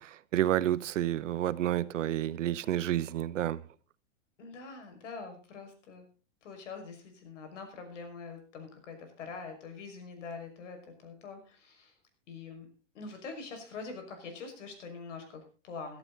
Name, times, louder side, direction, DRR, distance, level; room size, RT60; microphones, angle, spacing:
voice 1, 0.3-3.6, right 12 dB, 80° right, 1.0 m, -29 dB
voice 2, 4.4-6.1 6.4-11.9 12.3-12.7 12.9-16.0, left 4 dB, 75° left, 5.9 m, -44 dB
17.0 x 12.0 x 4.0 m
hypercardioid pair, 145°, 37 cm